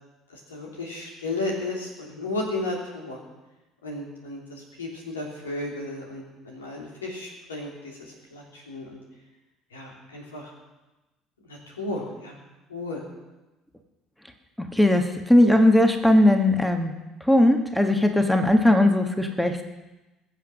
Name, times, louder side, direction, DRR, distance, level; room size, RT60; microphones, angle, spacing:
voice 1, 0.3-3.2 3.8-9.0 9.7-10.5 11.5-12.4 12.7-13.0, left 2 dB, 80° left, -1 dB, 3.2 m, -34 dB
voice 2, 14.6-16.9 17.2-19.6, left 1 dB, 5° left, 6 dB, 1.4 m, -19 dB
22.0 x 7.6 x 6.3 m, 1.1 s
figure-of-eight pair, 60°, 0 cm